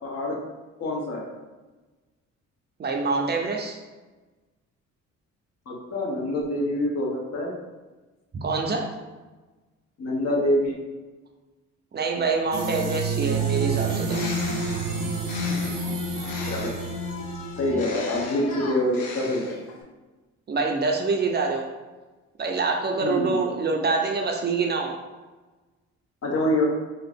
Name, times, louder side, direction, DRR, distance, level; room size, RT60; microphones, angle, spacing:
voice 1, 0.0-0.4 0.8-1.3 5.7-7.5 10.0-10.8 16.5-16.7 17.6-19.6 23.0-23.4 26.2-26.6, left 1 dB, 55° left, -1 dB, 0.9 m, -26 dB
voice 2, 2.8-3.8 8.4-8.9 11.9-14.2 20.5-21.7 22.4-25.0, right 4 dB, 35° right, 2 dB, 0.4 m, -25 dB
sound 1, 12.3-18.7, left 3 dB, 25° left, 0.4 m, -40 dB
sound 2, 12.5-17.7, right 3 dB, 90° right, 0.6 m, -28 dB
Bird, 13.8-16.9 17.6-19.8, left 3 dB, 80° left, 0.6 m, -38 dB
2.8 x 2.5 x 3.4 m, 1.2 s
cardioid pair, 90°, 30 cm